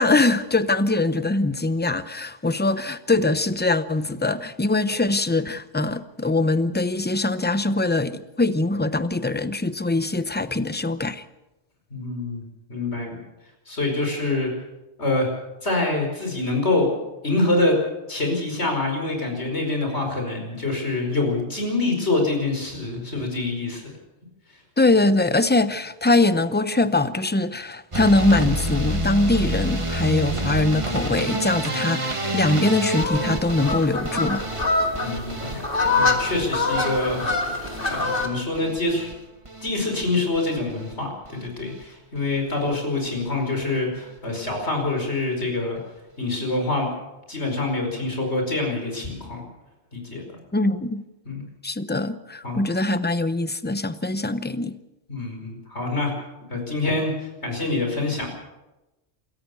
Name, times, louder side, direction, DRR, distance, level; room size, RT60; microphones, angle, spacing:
voice 1, 0.0-11.2 24.8-34.5 50.5-51.0 51.6-54.8, left 2 dB, 10° left, 0.6 m, -22 dB
voice 2, 11.9-12.4 12.7-13.2 13.7-14.5 15.0-15.3 15.6-16.9 17.2-17.8 18.1-23.9 35.0-35.6 36.0-37.3 37.8-39.1 39.6-45.8 46.2-46.9 47.3-49.4 49.9-50.2 51.3-51.5 52.4-52.6 55.1-56.1 56.5-58.3, left 2 dB, 70° left, 5.3 m, -25 dB
sound 1, 27.9-40.0 40.3-40.9 41.2-41.8 42.2-42.4 42.7-42.8 43.1-43.2, right 1 dB, 25° right, 1.6 m, -29 dB
sound 2, 33.0-38.3, left 3 dB, 50° left, 2.5 m, -25 dB
27.0 x 14.5 x 7.0 m
omnidirectional pair, 1.2 m